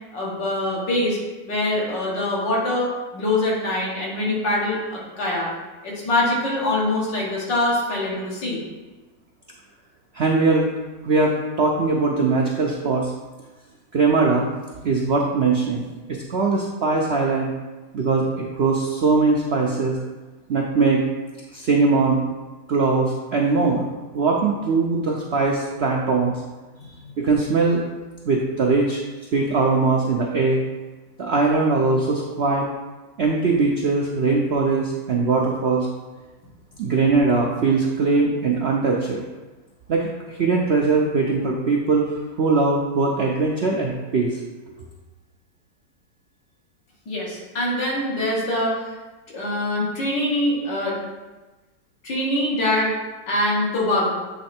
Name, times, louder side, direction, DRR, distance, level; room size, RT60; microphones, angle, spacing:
voice 1, 0.1-1.2 1.5-5.5 5.8-8.6 26.8-27.1 47.1-49.0 49.3-51.0 52.0-52.9 53.3-54.1, left 1 dB, 85° left, -5 dB, 2.2 m, -24 dB
voice 2, 10.1-10.6 11.0-13.1 13.9-14.5 14.8-15.8 16.1-17.5 17.9-20.0 20.5-21.0 21.5-22.2 22.7-23.9 24.1-26.3 27.2-27.8 28.3-29.0 29.3-30.6 31.2-32.7 33.2-35.9 36.8-39.2 39.9-42.1 42.4-44.4, right 4 dB, 75° right, -1 dB, 0.6 m, -21 dB
8.3 x 3.2 x 4.3 m, 1.2 s
omnidirectional pair, 1.9 m